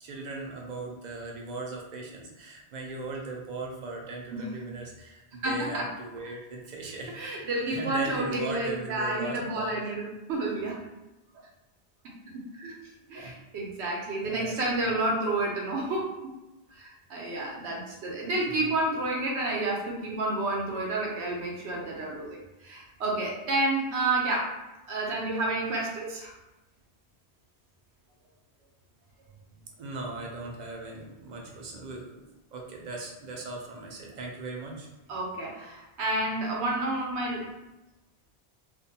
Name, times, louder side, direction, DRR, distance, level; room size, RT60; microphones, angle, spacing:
voice 1, 0.0-7.3 7.7-9.8 11.3-11.4 13.1-13.3 14.2-15.0 29.8-34.9, right 3 dB, 55° right, 0 dB, 0.5 m, -38 dB
voice 2, 5.4-5.9 7.1-10.8 12.0-12.8 13.1-16.1 16.7-24.5 24.9-26.4 35.1-37.5, right 2 dB, 80° right, -2 dB, 0.9 m, -30 dB
2.5 x 2.1 x 2.7 m, 1.0 s
omnidirectional pair, 1.1 m